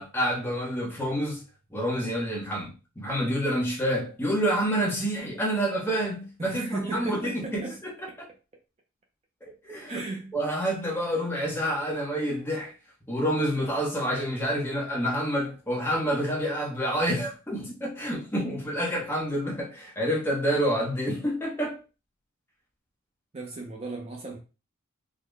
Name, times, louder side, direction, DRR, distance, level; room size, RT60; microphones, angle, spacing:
voice 1, 0.0-1.4 1.7-7.6 8.2-8.3 9.4-10.0 10.3-12.7 13.1-21.8, equal, 10° left, 0.9 m, -28 dB
voice 2, 6.4-7.8 8.1-8.2 9.9-10.3 23.3-24.4, right 2 dB, 30° right, 0.5 m, -35 dB
3.8 x 2.1 x 3.2 m
head